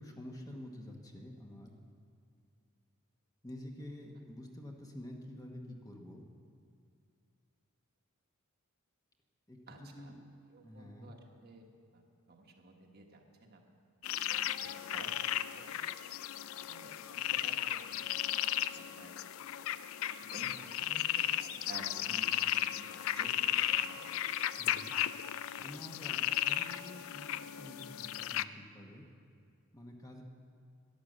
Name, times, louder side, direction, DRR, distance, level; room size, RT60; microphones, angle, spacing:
voice 1, 0.0-1.7 3.4-6.2 9.5-10.1 10.6-11.1 22.1-22.3 24.6-24.9 25.6-29.1 29.7-30.2, left 1 dB, 15° left, 1 dB, 1.0 m, -48 dB
voice 2, 9.7-10.1 10.5-11.6 11.9-12.0 12.3-13.6 14.2-14.3 14.6-15.3 15.5-15.8 16.7-18.1 18.7-19.1 20.1-22.3 22.6-22.9 23.1-24.5, right 2 dB, 45° right, 2 dB, 1.3 m, -53 dB
sound 1, 14.0-28.4, left 12 dB, 60° left, 0.3 m, -35 dB
11.5 x 10.5 x 7.4 m, 2.4 s
head